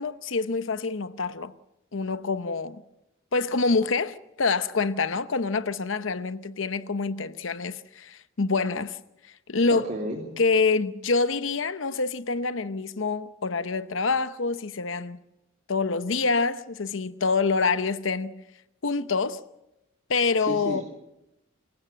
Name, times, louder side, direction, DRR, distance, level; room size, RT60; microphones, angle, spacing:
voice 1, 0.0-1.5 1.9-2.8 3.3-9.0 9.5-9.9 10.4-15.2 15.7-18.4 18.8-19.4 20.1-20.8, left 4 dB, 75° left, 0.9 m, -26 dB
voice 2, 9.7-10.2 20.4-20.8, equal, 40° right, 3.2 m, -32 dB
28.0 x 16.0 x 7.5 m
head